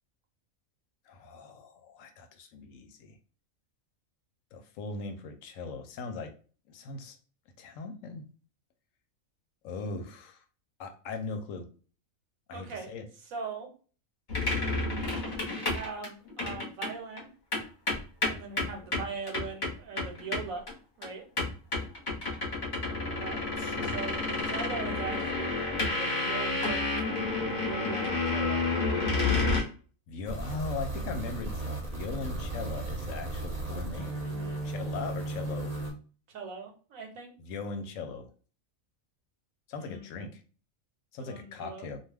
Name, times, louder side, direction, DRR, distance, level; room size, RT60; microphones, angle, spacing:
voice 1, 1.1-3.2 4.5-6.3 6.7-7.2 7.6-8.2 9.6-10.4 10.8-11.7 12.5-13.1 23.6-24.0 30.1-34.2 34.6-35.7 37.4-38.3 39.7-40.4 41.1-42.0, left 4 dB, 75° left, 6 dB, 0.9 m, -39 dB
voice 2, 12.5-13.7 15.5-17.3 18.3-20.6 21.0-21.3 23.0-23.4 23.8-27.0 27.4-28.7 34.2-34.6 36.3-37.3 39.8-40.1 41.2-41.9, right 5 dB, 80° right, 4 dB, 1.1 m, -41 dB
sound 1, 14.3-16.9 17.2-17.3 17.5-20.7 21.0-21.1 21.4-29.6, left 3 dB, 40° left, 0.9 m, -30 dB
sound 2, 30.3-35.9, right 2 dB, 35° right, 0.7 m, -35 dB
2.3 x 2.3 x 3.3 m, 0.39 s
omnidirectional pair, 1.4 m